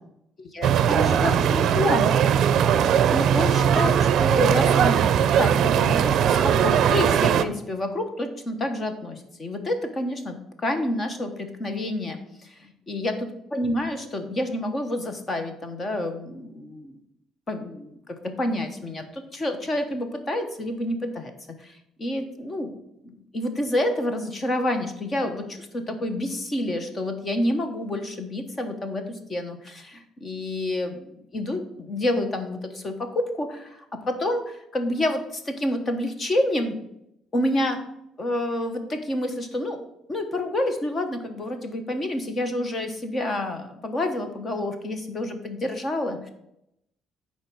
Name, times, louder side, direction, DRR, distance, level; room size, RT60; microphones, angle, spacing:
voice 1, 0.5-2.2 3.1-10.4 10.6-13.1 13.5-17.0 17.5-18.0 18.4-21.3 21.6-22.7 23.0-36.7 37.3-37.8 38.2-39.8 40.1-46.3, left 1 dB, 25° left, 7 dB, 1.2 m, -28 dB
sound 1, 0.6-7.4, right 8 dB, 55° right, 0.5 m, -20 dB
10.5 x 4.5 x 6.1 m, 0.80 s
cardioid pair, 150°, 0 cm